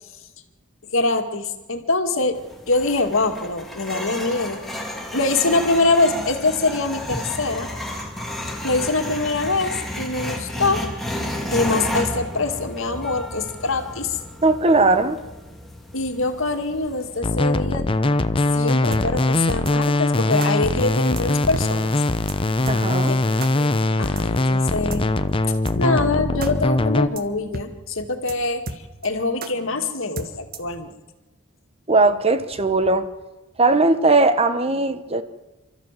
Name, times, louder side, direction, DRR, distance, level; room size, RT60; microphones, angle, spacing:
voice 1, 0.9-2.4 2.7-4.6 5.1-7.7 8.6-10.8 11.5-14.2 15.9-17.9 18.5-22.0 23.1-23.2 23.5-23.7 24.0-25.1 25.5-30.9, left 3 dB, 65° left, 2.2 m, -24 dB
sound 1, 2.4-17.2, left 1 dB, ahead, 2.9 m, -32 dB
voice 2, 14.4-15.2 22.7-23.1 31.9-33.1 33.6-35.2, right 3 dB, 30° right, 1.1 m, -18 dB
sound 2, 17.2-27.1, left 2 dB, 25° left, 0.7 m, -21 dB
sound 3, 18.9-19.0 19.7-19.8 20.4-20.5 21.2-21.3 21.5-21.7 21.9-22.0 22.3-22.4 22.7-22.8 23.4-23.5 24.2-24.3 24.9-25.0 25.7-25.8 26.0-26.1 26.4-26.5 26.8-26.9 27.2-27.3 27.5-27.7 27.9-28.0 28.3-28.4 28.7-29.1 29.4-29.5 30.2-30.7, right 2 dB, 45° right, 1.5 m, -32 dB
28.5 x 13.5 x 7.6 m
head